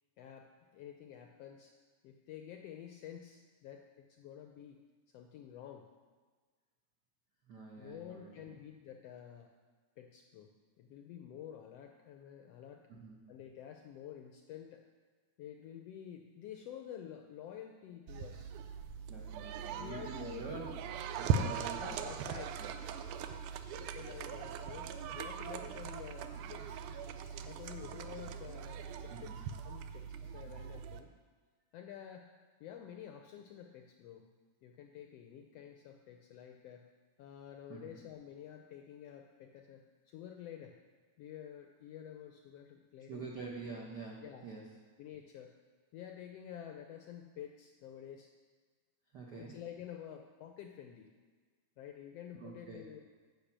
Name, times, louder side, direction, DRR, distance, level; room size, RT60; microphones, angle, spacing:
voice 1, 0.2-1.7 2.0-4.8 5.1-5.9 7.8-9.5 10.0-12.9 13.3-14.8 15.4-18.5 19.8-20.4 21.3-22.6 23.8-24.9 25.1-26.8 27.4-31.1 31.7-32.3 32.6-34.3 34.6-36.8 37.2-40.8 41.2-43.2 44.2-44.5 45.0-45.5 45.9-48.3 49.3-51.1 51.8-53.0, left 10 dB, 80° left, 4 dB, 1.4 m, -50 dB
voice 2, 7.5-8.6 12.9-13.2 19.1-20.7 21.1-22.0 22.2-22.7 29.1-29.4 37.7-38.0 43.1-44.6 49.1-49.6 52.3-52.8, right 4 dB, 70° right, -1 dB, 0.9 m, -46 dB
sound 1, 18.1-31.0, right 7 dB, 90° right, 2.1 m, -40 dB
10.5 x 5.8 x 7.3 m, 1.5 s
omnidirectional pair, 3.4 m